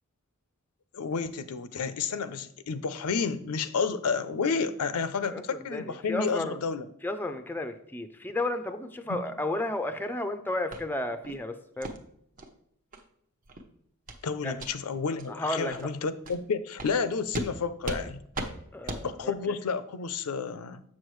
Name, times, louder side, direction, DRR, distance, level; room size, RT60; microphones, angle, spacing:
voice 1, 0.9-6.8 14.2-18.2 19.0-20.8, left 5 dB, 80° left, 13 dB, 0.5 m, -31 dB
voice 2, 5.3-6.6 7.0-11.9 14.4-14.5 15.3-15.9 18.7-19.3, left 1 dB, 10° left, 8 dB, 0.4 m, -33 dB
sound 1, 10.7-10.8 11.2-11.4 11.8-12.0 12.4-12.5 12.9-13.0 13.4-13.6 14.1-14.2 14.5-14.7 15.2-15.3 15.7-15.8 16.2-16.4 16.8-16.9 17.3-17.5 17.8-18.0 18.3-18.5 18.9-19.0, right 2 dB, 35° right, 0.7 m, -36 dB
7.3 x 6.3 x 3.1 m, 0.71 s
head